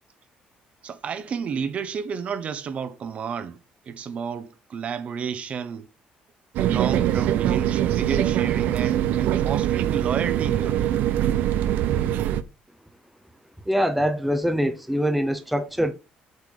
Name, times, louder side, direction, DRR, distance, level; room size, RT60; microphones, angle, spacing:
voice 1, 0.8-3.6 3.9-5.9 6.6-10.9, right 6 dB, 45° right, 1.1 m, -31 dB
sound 1, 6.5-12.4, right 12 dB, 75° right, 0.7 m, -23 dB
voice 2, 13.7-15.9, equal, ahead, 0.7 m, -23 dB
8.2 x 3.5 x 6.4 m
cardioid pair, 120°, 3 cm